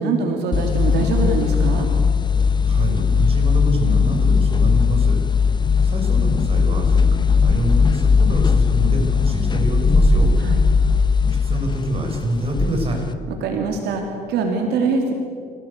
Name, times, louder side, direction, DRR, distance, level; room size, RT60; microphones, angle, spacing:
voice 1, 0.0-1.9 10.4-10.6 13.3-15.1, right 4 dB, 80° right, 2 dB, 3.2 m, -23 dB
sound 1, 0.5-13.1, left 5 dB, 25° left, 1.3 m, -18 dB
voice 2, 2.7-10.3 10.6-10.9 11.4-13.0, right 1 dB, 35° right, 2 dB, 5.9 m, -26 dB
27.5 x 17.0 x 8.3 m, 2.3 s
cardioid pair, 110°, 17 cm